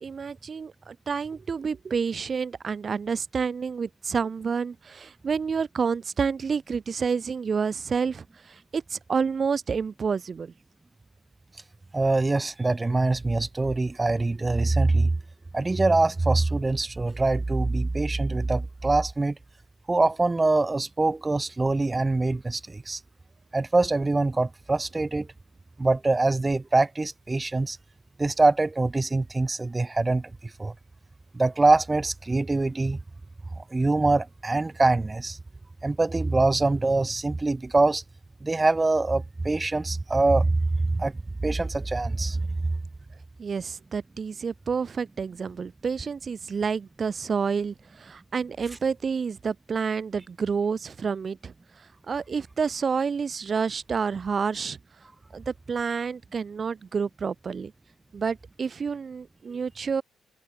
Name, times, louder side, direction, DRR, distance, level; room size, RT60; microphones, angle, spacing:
voice 1, 0.0-10.5 43.4-51.5 52.1-54.8 55.3-57.7 58.1-60.0, right 5 dB, 40° right, 0.6 m, -29 dB
voice 2, 11.9-15.1 15.5-19.4 19.9-23.0 23.5-25.3 25.8-27.8 28.2-30.3 30.6-30.7 31.3-33.0 33.7-35.4 35.8-38.0 38.4-41.1 41.4-42.7, right 2 dB, 20° right, 1.5 m, -24 dB
cardioid pair, 90°, 0 cm